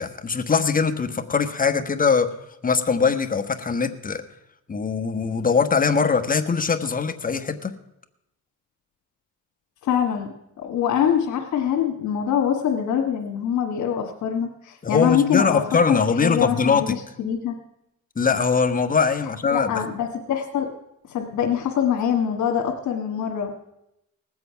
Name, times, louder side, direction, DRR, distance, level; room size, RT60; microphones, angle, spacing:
voice 1, 0.0-2.3 2.6-4.2 4.7-7.7 14.8-16.9 18.2-19.7, left 5 dB, 30° left, 8 dB, 1.2 m, -22 dB
voice 2, 9.8-10.3 10.6-15.6 15.9-17.6 19.5-20.7 21.1-23.7, left 8 dB, 80° left, -2 dB, 1.7 m, -24 dB
19.5 x 7.9 x 5.8 m, 0.85 s
cardioid pair, 90°, 30 cm